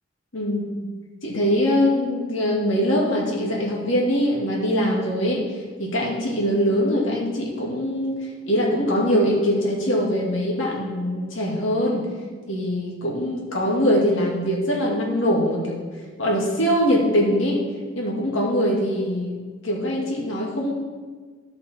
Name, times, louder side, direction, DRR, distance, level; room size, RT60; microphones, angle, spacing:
voice 1, 1.2-5.5 5.8-8.2 8.5-12.1 12.5-15.8 16.2-17.6 17.9-20.7, equal, 85° left, -3 dB, 2.2 m, -22 dB
13.5 x 5.2 x 4.4 m, 1.5 s
head